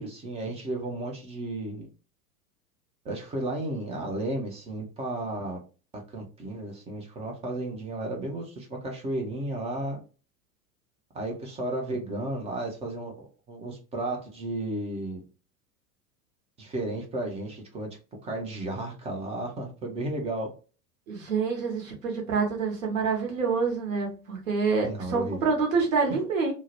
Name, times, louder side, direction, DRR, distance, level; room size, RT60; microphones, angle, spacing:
voice 1, 0.0-1.9 3.0-5.6 5.9-10.0 11.1-15.2 16.6-17.9 18.2-20.5 24.8-25.5, right 2 dB, 15° right, 1 dB, 0.5 m, -33 dB
voice 2, 21.1-26.5, right 5 dB, 60° right, 1 dB, 1.1 m, -27 dB
2.7 x 2.0 x 2.8 m, 0.34 s
figure-of-eight pair, 85°, 46 cm